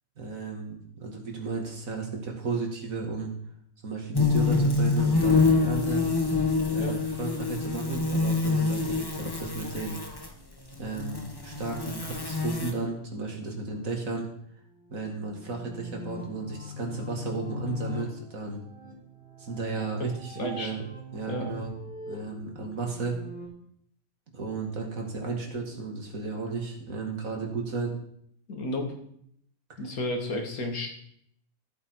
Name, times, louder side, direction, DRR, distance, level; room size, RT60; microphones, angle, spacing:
voice 1, 0.2-3.3 3.8-6.0 6.7-10.0 10.8-14.3 14.9-18.6 19.4-20.8 21.1-21.7 22.1-23.2 24.3-27.9, right 4 dB, 70° right, 1 dB, 2.6 m, -34 dB
sound 1, 4.1-10.3 10.9-12.7, left 3 dB, 20° left, 1.2 m, -26 dB
sound 2, 14.6-23.5, left 3 dB, 40° right, 4.6 m, -42 dB
voice 2, 20.3-20.8 21.3-21.5 28.5-28.9 29.8-30.9, left 1 dB, 80° left, 3 dB, 2.3 m, -32 dB
14.5 x 8.1 x 4.7 m, 0.69 s
omnidirectional pair, 1.5 m